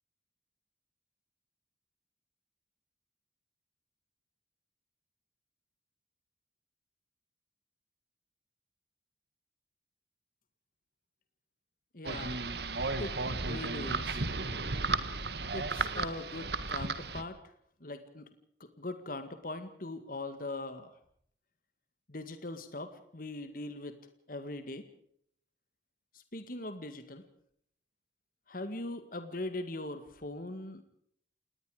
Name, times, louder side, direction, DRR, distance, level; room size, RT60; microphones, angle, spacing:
voice 1, 11.9-12.4 13.0-14.3 15.5-17.4 17.8-18.3 18.6-20.9 22.1-24.0 24.3-24.9 26.3-27.2 28.5-30.8, left 2 dB, 50° left, 9 dB, 1.9 m, -41 dB
sound 1, 12.0-17.2, right 3 dB, 60° right, 1.6 m, -34 dB
28.5 x 19.5 x 5.1 m, 0.65 s
head